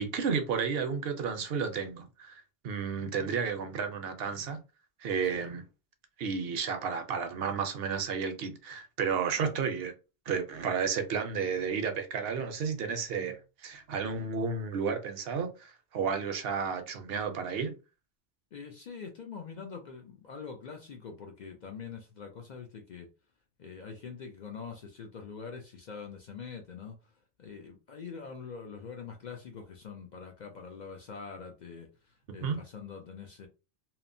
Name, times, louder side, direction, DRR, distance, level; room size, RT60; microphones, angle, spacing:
voice 1, 0.0-4.6 5.0-5.6 6.2-9.9 10.3-17.7 32.4-32.6, right 6 dB, 65° right, 0.7 m, -32 dB
voice 2, 18.5-23.1 23.6-33.5, left 5 dB, 60° left, 0.5 m, -44 dB
2.9 x 2.0 x 2.5 m
omnidirectional pair, 1.2 m